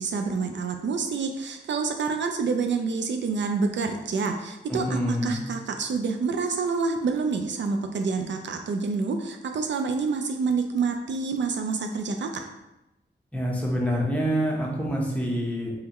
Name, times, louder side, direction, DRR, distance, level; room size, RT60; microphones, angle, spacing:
voice 1, 0.0-12.5, right 4 dB, 75° right, 5 dB, 0.4 m, -28 dB
voice 2, 4.7-5.4 13.3-15.7, equal, 5° left, -3 dB, 1.0 m, -26 dB
3.5 x 3.3 x 3.0 m, 0.96 s
cardioid pair, 70°, 19 cm